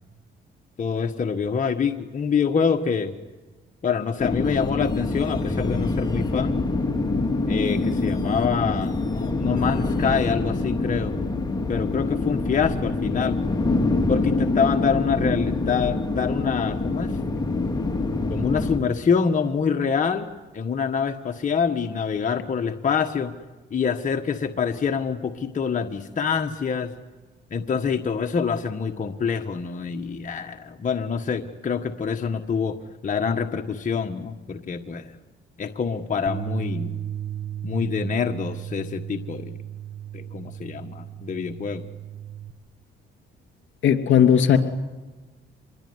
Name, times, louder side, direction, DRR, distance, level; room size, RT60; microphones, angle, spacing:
voice 1, 0.8-3.1 3.8-6.5 7.5-11.2 11.7-13.6 14.1-17.1 18.3-23.3 23.7-26.9 27.5-32.8 33.0-35.1 35.6-37.0 37.6-39.5 40.1-41.8, left 6 dB, 40° left, 4 dB, 1.5 m, -26 dB
sound 1, 4.2-18.8, left 2 dB, 20° left, 2.5 m, -25 dB
Bass guitar, 36.3-42.5, right 10 dB, 20° right, 1.8 m, -35 dB
voice 2, 43.8-44.6, left 9 dB, 70° left, 7 dB, 3.0 m, -16 dB
27.0 x 22.0 x 9.7 m, 1.3 s
cardioid pair, 90°, 20 cm